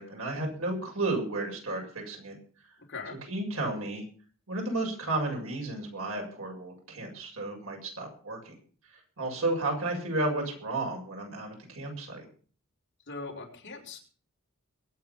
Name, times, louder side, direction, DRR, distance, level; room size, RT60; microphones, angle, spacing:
voice 1, 0.0-2.4 3.3-4.0 4.5-8.5 9.2-12.2, right 2 dB, 80° right, 1 dB, 7.2 m, -32 dB
voice 2, 13.1-14.0, left 3 dB, 55° left, 1 dB, 5.3 m, -40 dB
22.5 x 9.1 x 5.9 m, 0.43 s
head